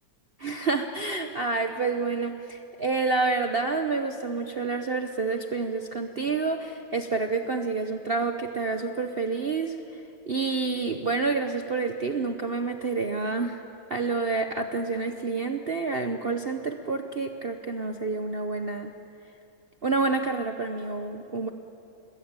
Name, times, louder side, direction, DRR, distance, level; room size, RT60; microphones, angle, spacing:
voice 1, 0.4-9.8 10.3-13.6 13.9-18.9 19.8-21.5, right 4 dB, 45° right, 6 dB, 0.8 m, -28 dB
27.5 x 20.5 x 8.9 m, 2.8 s
omnidirectional pair, 2.0 m